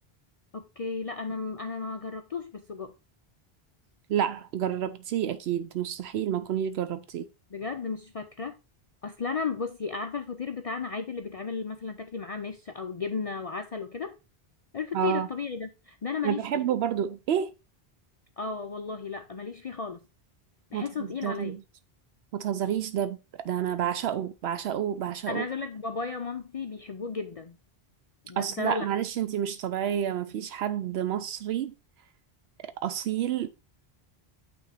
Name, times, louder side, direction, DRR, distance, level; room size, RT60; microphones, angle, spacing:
voice 1, 0.5-2.9 7.5-8.5 9.0-14.2 14.7-16.4 18.4-20.0 20.7-21.6 25.3-27.6 28.2-28.9, left 4 dB, 45° left, 0.5 m, -34 dB
voice 2, 4.1-7.3 14.9-15.3 16.2-17.5 20.7-21.6 22.3-25.5 28.4-31.7 32.6-33.5, right 10 dB, 80° right, 0.8 m, -29 dB
8.5 x 3.6 x 4.1 m
omnidirectional pair, 1.0 m